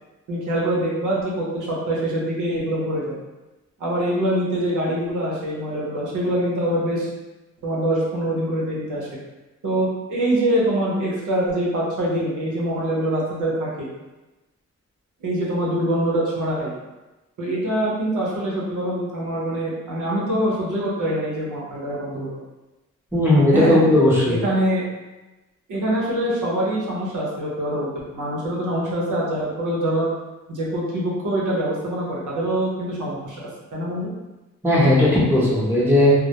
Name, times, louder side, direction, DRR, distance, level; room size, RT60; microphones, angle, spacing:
voice 1, 0.3-3.1 3.8-7.1 7.6-9.1 9.6-13.9 15.2-16.7 17.4-22.4 23.5-23.8 24.3-24.9 25.7-30.1 30.5-34.1, right 1 dB, 80° right, -5 dB, 0.8 m, -24 dB
voice 2, 23.1-24.4 34.6-36.1, left 1 dB, 5° right, -8 dB, 0.7 m, -16 dB
2.1 x 2.1 x 2.8 m, 1.1 s
wide cardioid pair, 95°, 31 cm